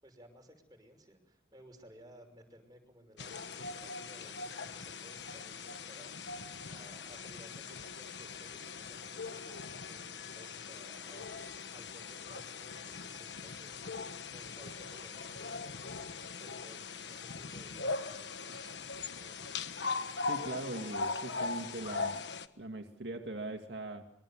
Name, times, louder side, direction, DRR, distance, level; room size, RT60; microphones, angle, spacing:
voice 1, 0.0-16.0 16.4-18.7 19.2-19.6, equal, 25° right, 4 dB, 5.8 m, -58 dB
sound 1, 3.2-22.5, left 4 dB, 80° left, 1.3 m, -41 dB
voice 2, 20.3-22.2 22.6-24.0, right 2 dB, 75° right, 5 dB, 2.0 m, -41 dB
25.5 x 23.0 x 7.2 m, 0.76 s
head